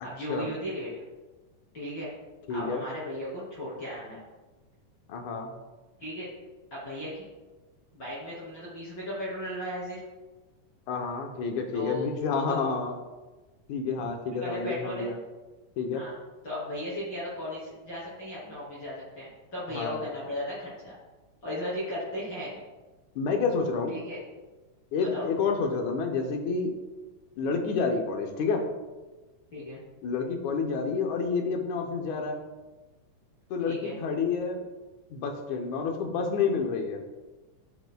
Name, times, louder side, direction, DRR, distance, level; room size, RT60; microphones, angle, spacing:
voice 1, 0.0-1.0 1.7-2.1 2.5-4.2 6.0-6.3 6.7-7.3 7.9-10.0 11.7-12.0 12.3-12.6 14.4-15.1 15.9-16.1 16.4-21.0 21.4-22.6 23.9-24.2 25.1-25.3 29.5-29.8 33.6-34.0, left 1 dB, 35° left, -9 dB, 3.2 m, -36 dB
voice 2, 2.5-2.8 5.1-5.5 10.9-13.0 13.7-15.1 15.8-16.0 19.7-20.0 23.2-24.0 24.9-26.7 27.4-28.6 30.0-32.4 33.5-34.6 35.1-37.0, left 5 dB, 70° left, 3 dB, 2.1 m, -29 dB
13.5 x 5.9 x 2.3 m, 1.2 s
omnidirectional pair, 3.8 m